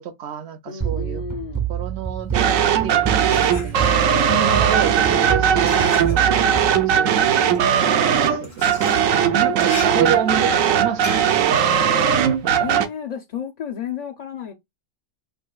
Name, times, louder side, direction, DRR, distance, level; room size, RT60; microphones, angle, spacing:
voice 1, 0.0-1.3 1.7-12.8, right 8 dB, 65° right, 0.7 m, -30 dB
voice 2, 0.7-1.7 4.1-5.9 9.2-9.6 10.1-10.4 12.6-14.5, left 7 dB, 55° left, 0.4 m, -33 dB
sound 1, 0.8-7.4, right 9 dB, 25° right, 0.5 m, -28 dB
sound 2, 2.2-4.2 5.0-12.9, left 4 dB, 75° left, 1.6 m, -40 dB
sound 3, 2.3-12.9, right 8 dB, 90° right, 1.0 m, -18 dB
5.4 x 2.5 x 2.2 m
omnidirectional pair, 1.3 m